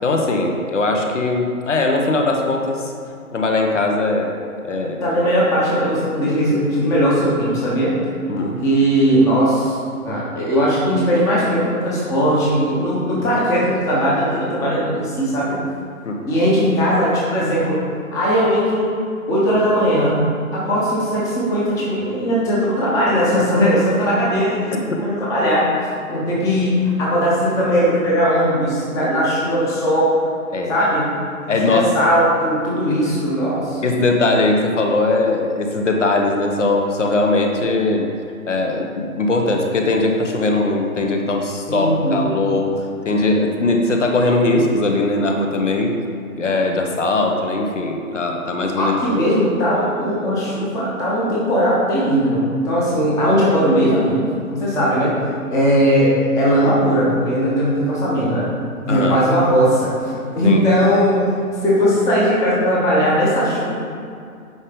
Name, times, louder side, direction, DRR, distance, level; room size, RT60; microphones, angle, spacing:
voice 1, 0.0-2.9 3.3-4.3 4.6-5.0 8.3-8.5 15.5-15.6 16.0-16.2 30.5-30.7 31.5-31.9 33.8-38.1 38.5-42.7 43.0-45.9 46.4-48.9 58.9-59.2 60.4-60.6, left 2 dB, 55° left, 2 dB, 1.3 m, -20 dB
voice 2, 5.0-7.9 8.4-9.8 10.0-15.6 16.3-17.8 18.1-18.9 19.3-20.2 20.5-25.7 26.1-30.2 30.7-31.0 31.4-33.8 41.7-42.2 48.8-55.1 55.5-58.5 58.8-63.8, equal, 5° left, -6 dB, 1.0 m, -18 dB
9.8 x 5.0 x 5.2 m, 2.4 s
figure-of-eight pair, 135°, 43 cm